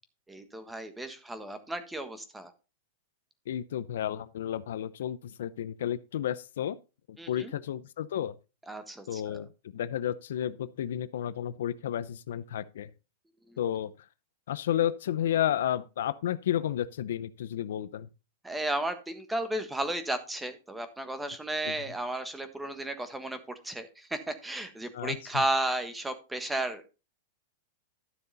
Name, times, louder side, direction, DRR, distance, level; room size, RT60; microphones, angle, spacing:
voice 1, 0.3-2.5 7.2-7.5 8.7-9.4 13.5-13.6 18.4-23.4 23.6-26.8, right 1 dB, 5° right, 1.3 m, -34 dB
voice 2, 3.5-6.8 7.1-8.3 9.1-12.9 13.6-13.9 14.5-18.1 21.7-21.8 24.9-25.4, left 11 dB, 75° left, 0.7 m, -32 dB
12.5 x 6.8 x 4.1 m
supercardioid pair, 160°, 0 cm